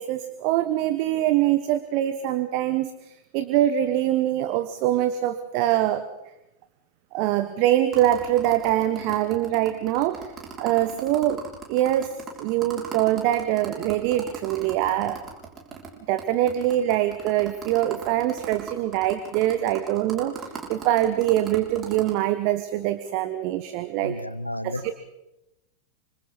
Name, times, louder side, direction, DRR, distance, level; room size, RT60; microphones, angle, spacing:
voice 1, 0.0-6.0 7.1-11.4 11.7-15.3 16.1-24.1 24.6-24.9, right 13 dB, 45° right, 10 dB, 1.3 m, -24 dB
sound 1, 7.9-15.9 16.2-16.3 16.5-22.1, right 6 dB, 25° right, 6.2 m, -38 dB
voice 2, 24.0-24.9, left 1 dB, 85° left, 16 dB, 0.9 m, -32 dB
27.5 x 26.0 x 4.2 m, 0.93 s
figure-of-eight pair, 90°, 0 cm